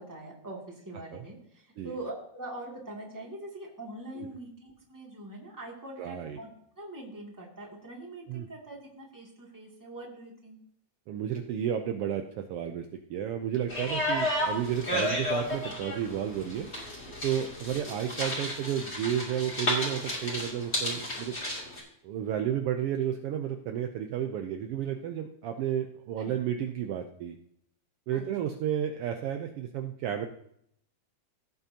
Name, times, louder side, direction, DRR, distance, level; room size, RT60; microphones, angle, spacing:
voice 1, 0.0-6.5 6.8-10.6 17.0-17.2 26.2-26.4 28.1-28.5, right 1 dB, 5° right, -2 dB, 1.9 m, -43 dB
voice 2, 6.0-6.4 8.3-8.5 11.1-16.7 17.2-21.4 22.0-27.4 28.1-30.3, right 9 dB, 85° right, 5 dB, 1.3 m, -32 dB
sound 1, 13.7-21.8, left 1 dB, 25° left, 2.6 m, -32 dB
17.0 x 8.2 x 2.8 m, 0.71 s
omnidirectional pair, 3.4 m